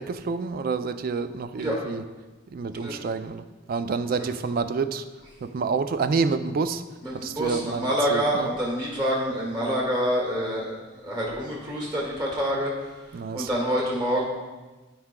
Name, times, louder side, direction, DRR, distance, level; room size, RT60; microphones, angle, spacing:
voice 1, 0.0-2.0 2.5-5.1 5.4-6.8 7.1-8.5 13.1-13.5, right 4 dB, 45° right, 11 dB, 0.3 m, -28 dB
voice 2, 7.0-12.7 13.3-14.2, equal, 25° right, -3 dB, 1.7 m, -27 dB
13.5 x 4.7 x 2.2 m, 1.2 s
head